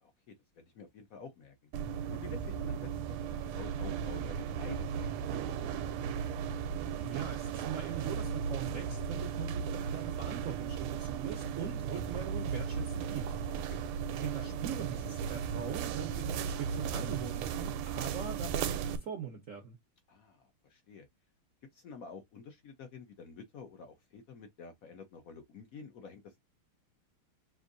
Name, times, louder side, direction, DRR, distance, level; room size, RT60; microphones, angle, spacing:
voice 1, 0.0-1.7 2.1-3.2 3.5-5.1 5.4-6.1 13.7-13.8 20.1-21.1 21.7-26.5, left 5 dB, 75° left, 0.7 m, -50 dB
sound 1, 1.7-19.0, right 7 dB, 80° right, 1.5 m, -36 dB
voice 2, 6.9-13.3 14.2-19.8, right 7 dB, 65° right, 0.8 m, -42 dB
6.2 x 2.6 x 2.6 m
omnidirectional pair, 2.4 m